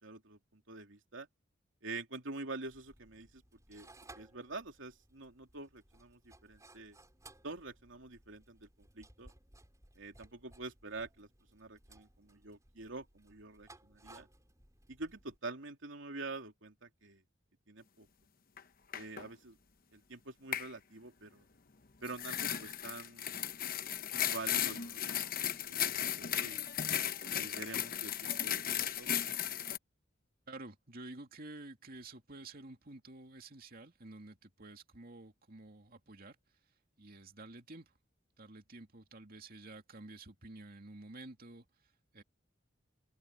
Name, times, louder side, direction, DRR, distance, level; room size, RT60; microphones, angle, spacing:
voice 1, 0.0-1.3 1.8-3.4 3.7-3.9 4.1-7.0 7.4-8.7 8.9-9.3 9.9-14.3 14.9-17.2 17.7-18.1 18.9-19.6 19.9-21.5 22.0-23.5 24.1-25.0 25.7-26.7 27.3-29.1, right 3 dB, 80° right, 3.0 m, -46 dB
sound 1, 2.7-15.4, right 2 dB, 15° right, 6.2 m, -61 dB
sound 2, 18.6-18.7 18.9-19.3 20.5-20.7 22.0-29.8, left 10 dB, 50° left, 1.0 m, -36 dB
voice 2, 30.5-36.7 37.0-37.9 38.4-42.2, right 2 dB, 50° right, 2.6 m, -51 dB
head